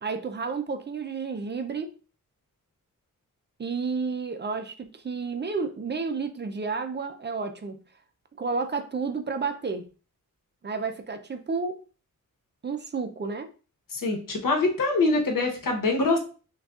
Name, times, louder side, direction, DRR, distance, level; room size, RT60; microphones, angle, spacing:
voice 1, 0.0-1.9 3.6-7.8 8.4-9.9 10.6-11.8 12.6-13.5, right 4 dB, 35° right, 0.4 m, -31 dB
voice 2, 13.9-16.2, left 3 dB, 85° left, 1.0 m, -24 dB
6.0 x 2.3 x 2.3 m
wide cardioid pair, 130°, 32 cm